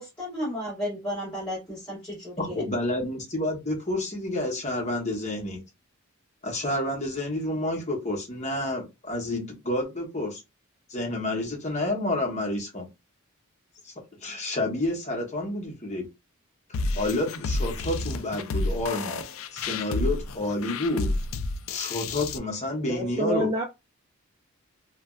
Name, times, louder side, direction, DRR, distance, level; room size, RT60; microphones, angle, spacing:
voice 1, 0.0-2.6, equal, 5° left, 1.6 m, -33 dB
voice 2, 2.4-5.6 6.4-10.4 10.9-12.9 13.8-13.9 14.2-16.1 16.9-19.2 19.5-21.1 21.7-23.5, left 1 dB, 30° left, 1.0 m, -29 dB
sound 1, 16.7-22.4, left 2 dB, 65° left, 0.3 m, -30 dB
voice 3, 22.9-23.6, equal, 20° right, 0.4 m, -27 dB
3.3 x 2.2 x 2.4 m
head